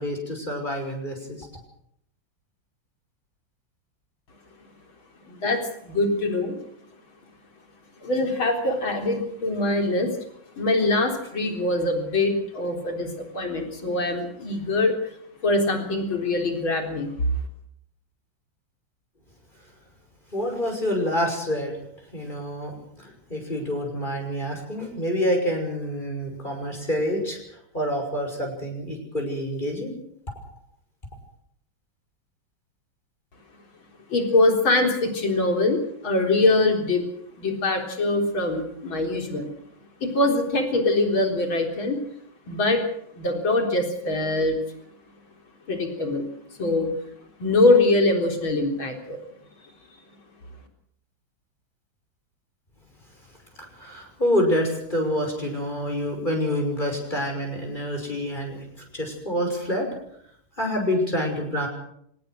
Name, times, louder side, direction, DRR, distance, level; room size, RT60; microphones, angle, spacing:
voice 1, 0.0-1.5 20.3-21.8 22.1-29.9 53.6-58.6 58.9-59.9 60.6-61.7, equal, 25° left, 2 dB, 6.4 m, -27 dB
voice 2, 5.3-6.6 8.0-10.2 10.6-15.0 15.4-17.3 34.1-37.0 37.4-39.5 40.0-42.0 42.5-42.8 43.1-44.6 45.7-46.3 46.6-46.9 47.4-49.2, left 2 dB, 80° left, 4 dB, 4.7 m, -23 dB
25.5 x 19.5 x 6.4 m, 0.70 s
omnidirectional pair, 2.2 m